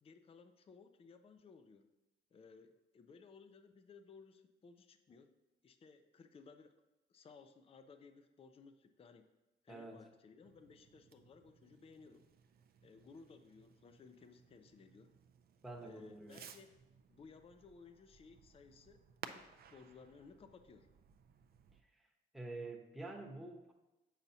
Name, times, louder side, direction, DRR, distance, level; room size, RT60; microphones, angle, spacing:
voice 1, 0.0-1.9 2.3-5.3 5.6-6.7 7.1-9.3 9.6-12.2 12.8-15.1 15.8-16.7 17.1-19.0 19.3-20.9, left 5 dB, 30° left, 8 dB, 0.4 m, -59 dB
voice 2, 9.7-10.0 15.6-16.4 22.3-23.7, right 2 dB, ahead, 0 dB, 0.9 m, -47 dB
Fireworks, 10.4-21.8, right 7 dB, 50° right, 0.5 m, -58 dB
7.1 x 5.6 x 2.7 m, 1.0 s
cardioid pair, 90°, 20 cm